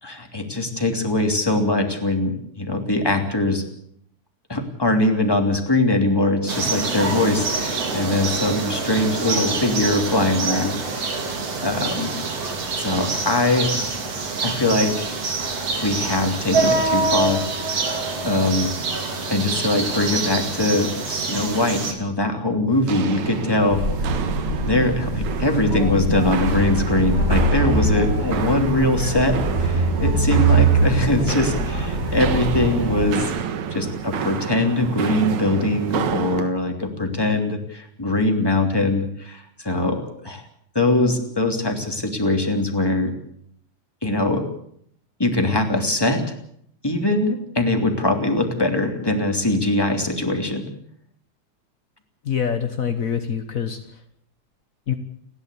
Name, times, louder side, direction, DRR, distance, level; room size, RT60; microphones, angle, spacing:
voice 1, 0.0-3.6 4.5-11.2 11.6-12.1 12.8-13.8 14.4-15.1 15.8-17.9 18.2-18.7 19.3-23.8 24.6-33.3 33.7-40.4 40.7-43.1 44.0-44.4 45.2-46.2 46.8-50.7, left 2 dB, 10° left, 3 dB, 2.8 m, -22 dB
sound 1, 6.5-21.9, right 4 dB, 55° right, 3.9 m, -26 dB
Walk footsteps, 22.7-36.5, right 8 dB, 70° right, 2.8 m, -29 dB
sound 2, 23.7-33.1, right 2 dB, 20° right, 7.6 m, -23 dB
voice 2, 52.2-54.0 54.9-55.0, left 7 dB, 55° left, 7 dB, 0.9 m, -25 dB
30.0 x 12.0 x 8.4 m, 0.68 s
omnidirectional pair, 3.4 m